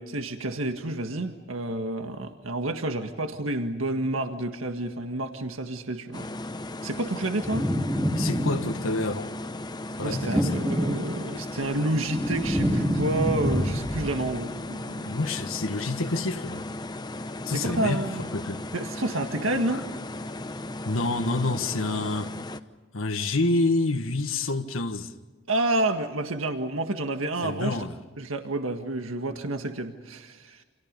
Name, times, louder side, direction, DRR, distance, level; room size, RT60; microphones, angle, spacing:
voice 1, 0.0-6.3 6.8-7.7 10.0-15.1 17.5-18.3 18.7-19.9 25.5-27.8 28.2-30.6, right 2 dB, 80° right, 1.8 m, -29 dB
sound 1, 6.1-22.6, left 2 dB, 20° left, 0.9 m, -36 dB
sound 2, 7.4-9.0 9.9-11.4 11.8-14.2, equal, 10° right, 2.7 m, -27 dB
voice 2, 8.1-9.3 10.0-10.6 15.0-16.6 17.4-18.0 18.3-18.6 20.8-22.3 22.9-25.1 27.4-28.0, left 2 dB, 80° left, 1.6 m, -28 dB
29.5 x 27.5 x 5.3 m
head